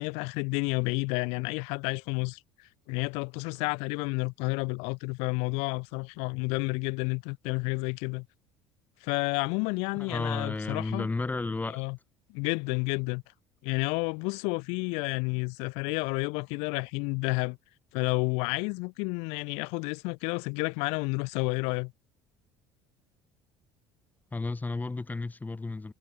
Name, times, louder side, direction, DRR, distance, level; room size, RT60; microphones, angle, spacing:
voice 1, 0.0-8.3 9.0-11.1 11.7-12.0 12.3-13.2 13.6-17.6 17.9-21.9, left 32 dB, 80° left, 2.5 m, -30 dB
voice 2, 10.0-11.8 24.3-25.9, left 3 dB, 15° left, 4.9 m, -32 dB
supercardioid pair, 100°, 11 cm